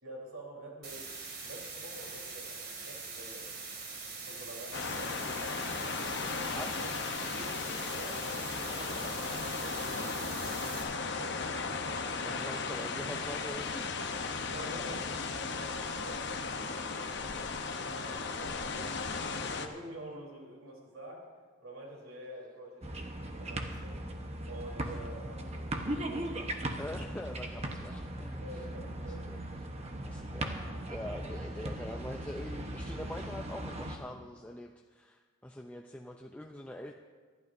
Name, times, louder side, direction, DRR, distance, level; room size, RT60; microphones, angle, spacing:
voice 1, 0.0-3.5 4.0-5.7 6.0-6.9 7.2-11.3 14.4-16.3 17.9-18.9 19.5-21.3 21.6-24.0 24.4-27.1 28.4-29.3, right 1 dB, 80° right, -2 dB, 3.6 m, -48 dB
sound 1, 0.8-10.8, right 4 dB, 50° right, 2.2 m, -43 dB
sound 2, 4.7-19.7, left 4 dB, 55° left, 0.8 m, -36 dB
voice 2, 6.5-6.9 12.2-13.9 14.8-14.9 26.8-28.6 29.1-29.4 30.0-30.6 30.9-36.9, left 1 dB, 5° left, 1 dB, 0.4 m, -44 dB
sound 3, 22.8-34.0, right 1 dB, 30° right, 1.0 m, -38 dB
25.0 x 12.0 x 2.7 m, 1.5 s
head